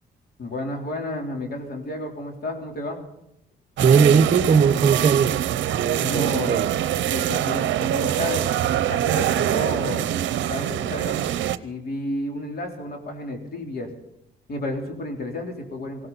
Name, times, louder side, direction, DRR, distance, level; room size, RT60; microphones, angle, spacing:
voice 1, 0.4-3.0 6.0-6.6 7.1-8.5 8.9-10.1 10.5-11.2 11.6-13.9 14.5-16.1, left 1 dB, 50° left, 2 dB, 3.6 m, -31 dB
voice 2, 3.8-5.4 5.7-6.7, right 6 dB, 40° right, 11 dB, 0.9 m, -19 dB
sound 1, 3.8-11.6, right 11 dB, 70° right, 0.7 m, -24 dB
19.0 x 16.5 x 4.1 m, 0.80 s
cardioid pair, 90°, 20 cm